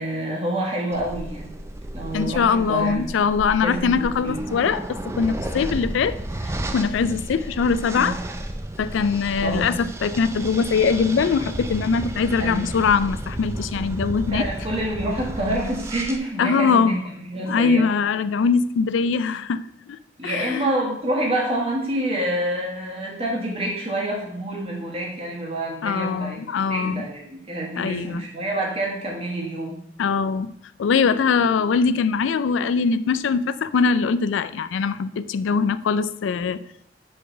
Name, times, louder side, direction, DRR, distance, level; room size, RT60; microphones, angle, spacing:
voice 1, 0.0-1.5 1.9-3.1 3.6-3.9 4.2-4.4 7.9-8.1 9.4-9.8 12.4-12.6 14.3-17.8 20.2-26.4 26.7-29.8, right 1 dB, 30° right, -3 dB, 1.7 m, -27 dB
sound 1, 0.9-16.2, right 1 dB, 15° right, 0.4 m, -33 dB
voice 2, 2.1-6.2 6.5-8.2 8.8-14.4 16.4-17.0 17.5-19.6 20.2-20.7 25.8-27.0 27.8-28.2 30.0-30.5 30.8-36.6, left 5 dB, 85° left, 14 dB, 0.4 m, -22 dB
5.0 x 4.3 x 5.5 m, 0.76 s
head